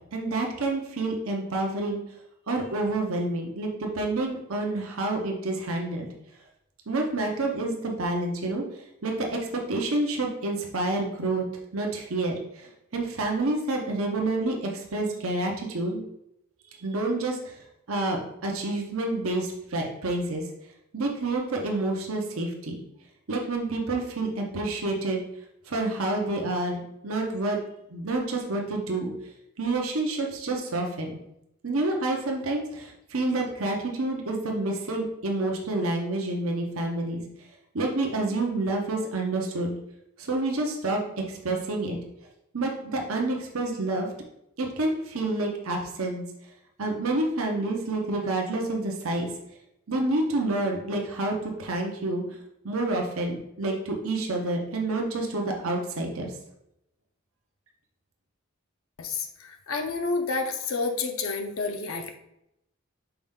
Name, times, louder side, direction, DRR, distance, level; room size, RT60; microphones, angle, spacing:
voice 1, 0.1-2.0 2.5-6.1 6.9-11.4 11.7-16.0 16.8-17.6 17.9-20.5 20.9-22.8 23.3-25.2 25.7-27.6 27.9-29.1 29.6-31.2 31.6-37.2 37.7-39.7 40.2-42.0 42.5-44.1 44.6-46.2 46.8-49.3 49.9-52.2 52.6-56.3, right 2 dB, 85° right, 1 dB, 1.0 m, -28 dB
voice 2, 59.0-62.2, left 4 dB, 75° left, 4 dB, 0.7 m, -30 dB
5.9 x 4.4 x 3.7 m, 0.82 s
head